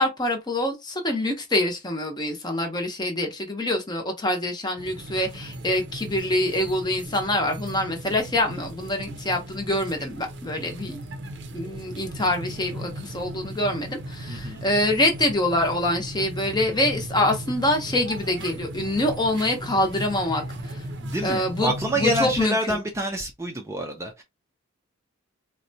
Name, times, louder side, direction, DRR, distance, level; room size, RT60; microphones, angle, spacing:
voice 1, 0.0-11.0 11.5-20.8 21.2-21.7 22.0-22.8, left 1 dB, 20° left, 0.7 m, -25 dB
sound 1, 4.8-22.4, right 1 dB, 55° right, 0.6 m, -37 dB
voice 2, 14.3-14.6 21.0-24.2, equal, 15° right, 0.5 m, -27 dB
3.9 x 2.2 x 2.7 m
head